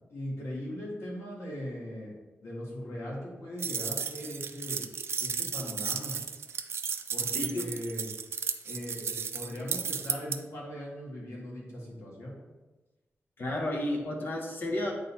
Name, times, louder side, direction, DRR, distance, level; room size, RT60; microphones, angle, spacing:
voice 1, 0.1-4.9 5.2-6.2 7.1-8.1 8.6-12.3, equal, 75° left, -4 dB, 1.9 m, -39 dB
sound 1, 3.6-10.4, right 6 dB, 65° right, 0.4 m, -34 dB
voice 2, 7.3-7.7 13.4-14.9, left 1 dB, 50° left, 0 dB, 1.1 m, -32 dB
8.8 x 4.0 x 2.8 m, 1.1 s
wide cardioid pair, 160°, 5 cm